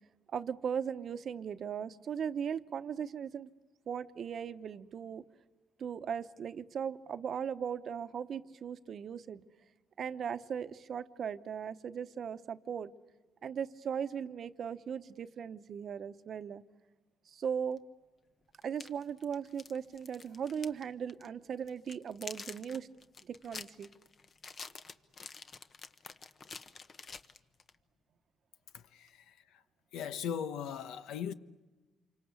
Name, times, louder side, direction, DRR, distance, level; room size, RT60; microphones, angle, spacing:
voice 1, 0.3-3.5 3.9-5.2 5.8-9.4 10.0-12.9 13.4-16.6 17.3-17.8 18.6-22.9 23.2-23.9, right 7 dB, 55° right, 1.0 m, -38 dB
sound 1, 17.8-17.9 18.6-20.8 21.1-21.3 21.7-27.8, left 5 dB, 45° left, 1.2 m, -48 dB
voice 2, 28.7-29.6 29.9-31.3, left 8 dB, 85° left, 1.0 m, -39 dB
27.5 x 25.0 x 8.3 m
cardioid pair, 90°, 0 cm